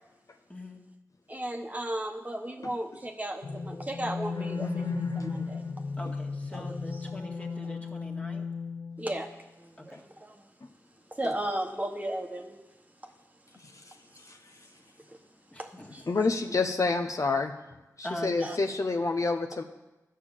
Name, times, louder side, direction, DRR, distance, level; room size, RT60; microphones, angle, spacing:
voice 1, 0.5-0.8 6.0-8.4 9.9-10.0 15.5-15.9 18.0-18.5, equal, 20° left, 0 dB, 1.9 m, -41 dB
voice 2, 1.3-5.6 6.5-6.6 9.0-9.3 9.6-10.3 11.2-12.6 15.6-16.0 18.4-18.6, right 1 dB, 25° right, 4 dB, 1.1 m, -35 dB
sound 1, 3.4-9.3, left 4 dB, 85° left, 1.2 m, -35 dB
voice 3, 16.1-17.5 18.0-19.6, left 3 dB, 55° left, 4 dB, 0.9 m, -28 dB
12.0 x 6.6 x 8.9 m, 1.0 s
wide cardioid pair, 60°, 6 cm